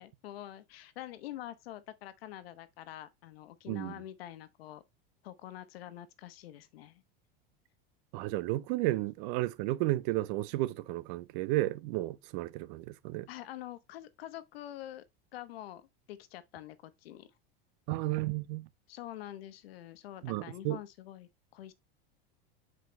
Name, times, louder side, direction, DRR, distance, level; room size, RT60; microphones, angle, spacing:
voice 1, 0.0-4.8 5.2-7.0 13.3-15.0 15.3-17.3 18.9-21.7, left 13 dB, 90° left, 1.1 m, -46 dB
voice 2, 3.7-4.0 8.1-13.3 17.9-18.7 20.2-20.8, right 17 dB, 55° right, 0.7 m, -33 dB
7.8 x 4.9 x 3.1 m
supercardioid pair, 145°, 29 cm